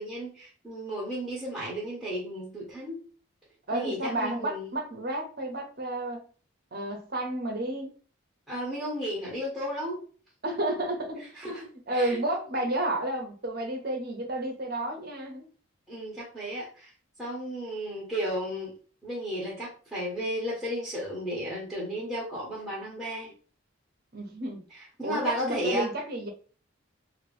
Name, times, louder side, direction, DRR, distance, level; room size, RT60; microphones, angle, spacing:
voice 1, 0.0-3.0 3.7-4.7 8.5-10.0 11.4-11.7 11.9-12.2 15.9-16.9 17.2-18.7 19.0-23.3 25.0-25.9, equal, ahead, 1.0 m, -33 dB
voice 2, 3.7-6.3 6.7-7.9 10.4-11.4 11.9-15.5 24.1-24.6 25.0-26.3, right 1 dB, 45° right, 0.8 m, -31 dB
2.9 x 2.6 x 3.2 m
head